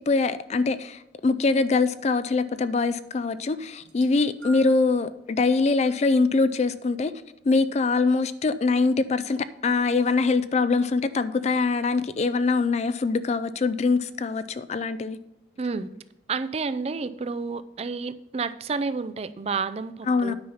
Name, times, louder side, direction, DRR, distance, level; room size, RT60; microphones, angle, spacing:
voice 1, 0.1-7.1 7.4-15.2 20.1-20.3, left 3 dB, 40° left, 14 dB, 0.4 m, -23 dB
sound 1, 3.8-5.0 5.8-6.0 7.1-7.2, right 3 dB, 85° right, 1.2 m, -47 dB
voice 2, 15.6-15.9 16.3-20.3, right 4 dB, 35° right, 13 dB, 0.4 m, -30 dB
9.6 x 5.5 x 5.6 m, 0.87 s
head